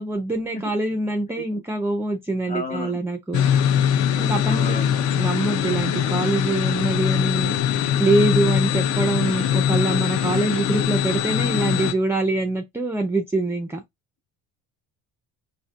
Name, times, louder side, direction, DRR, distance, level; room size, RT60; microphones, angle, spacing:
voice 1, 0.0-3.4 4.2-4.8 5.1-7.6 8.0-13.8, right 2 dB, 5° right, 0.4 m, -24 dB
voice 2, 2.5-3.0 4.4-5.0, left 2 dB, 20° left, 1.1 m, -32 dB
sound 1, 3.3-11.9, left 9 dB, 50° left, 0.6 m, -22 dB
4.2 x 2.9 x 2.3 m
cardioid pair, 150°, 38 cm